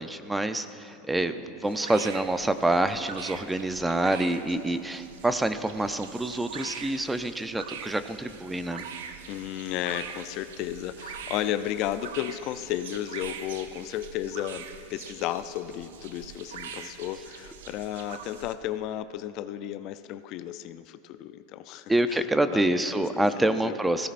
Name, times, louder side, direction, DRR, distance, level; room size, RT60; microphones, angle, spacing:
voice 1, 0.0-8.9 21.9-24.1, right 1 dB, 10° right, 10 dB, 0.5 m, -27 dB
sound 1, 1.6-18.5, right 7 dB, 85° right, 0.8 m, -43 dB
voice 2, 9.3-23.8, left 12 dB, 55° left, 12 dB, 0.4 m, -34 dB
17.5 x 16.5 x 2.6 m, 2.8 s
supercardioid pair, 115°, 0 cm